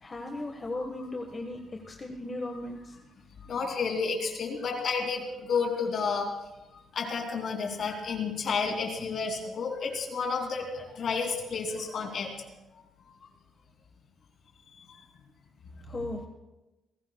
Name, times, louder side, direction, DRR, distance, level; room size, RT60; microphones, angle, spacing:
voice 1, 0.0-2.9 15.9-16.3, left 2 dB, 30° left, 2 dB, 1.5 m, -37 dB
voice 2, 3.5-5.2 5.5-6.3 6.9-12.3, left 5 dB, 60° left, 2 dB, 2.9 m, -31 dB
27.5 x 16.5 x 2.3 m, 1.0 s
cardioid pair, 90°, 0 cm